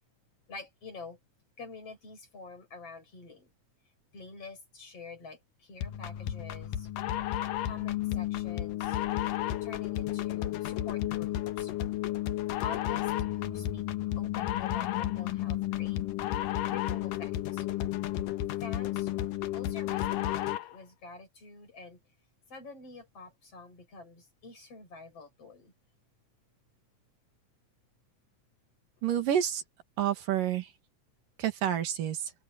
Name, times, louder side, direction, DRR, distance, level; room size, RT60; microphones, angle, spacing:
voice 1, 0.5-1.2 1.6-3.5 4.1-6.9 7.6-9.0 9.6-11.7 12.6-13.9 14.2-16.0 16.7-17.7 18.6-19.1 19.5-22.0 22.5-25.7, left 4 dB, 45° left, 7.9 m, -47 dB
sound 1, 5.8-20.8, left 13 dB, 85° left, 2.7 m, -32 dB
voice 2, 29.0-29.6 30.0-30.7 31.4-32.3, right 10 dB, 85° right, 3.7 m, -29 dB
omnidirectional pair, 3.8 m